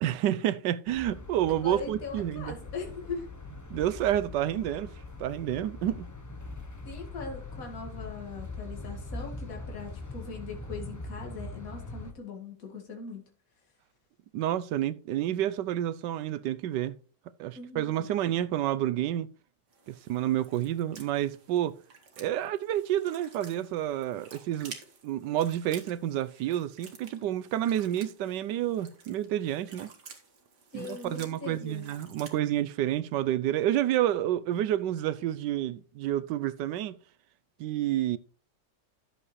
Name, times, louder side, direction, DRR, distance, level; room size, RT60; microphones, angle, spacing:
voice 1, 0.0-2.5 3.7-4.9 5.2-6.1 14.3-16.9 17.4-19.3 19.9-21.8 22.2-24.8 25.0-29.9 30.7-36.9 37.6-38.2, right 12 dB, 85° right, 1.3 m, -29 dB
sound 1, 0.9-12.1, left 2 dB, 20° left, 0.5 m, -42 dB
voice 2, 1.6-3.3 6.9-13.3 17.6-18.1 30.7-31.9, left 4 dB, 55° left, 2.4 m, -40 dB
sound 2, 19.7-32.4, right 5 dB, 70° right, 2.2 m, -52 dB
11.0 x 7.4 x 3.2 m
omnidirectional pair, 1.9 m